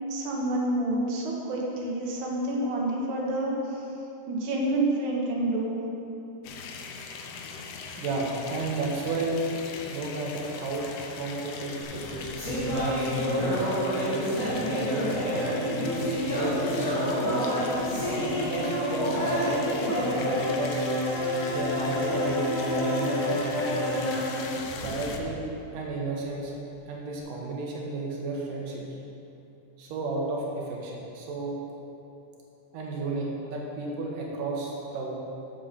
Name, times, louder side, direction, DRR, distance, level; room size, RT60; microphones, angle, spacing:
voice 1, 0.1-3.5 4.3-5.8, right 1 dB, 70° right, -2 dB, 2.6 m, -28 dB
sound 1, 6.4-25.2, left 5 dB, 75° left, 1.6 m, -41 dB
voice 2, 8.0-9.5 9.9-12.3 12.7-15.7 16.3-17.5 18.0-19.7 20.1-20.9 21.5-24.2 24.8-25.4 25.7-26.5 26.9-28.8 29.8-31.6 32.7-35.1, right 2 dB, 90° right, -2 dB, 2.7 m, -33 dB
sound 2, 11.8-25.3, equal, 25° left, 2.5 m, -28 dB
7.6 x 7.1 x 6.8 m, 2.8 s
omnidirectional pair, 3.7 m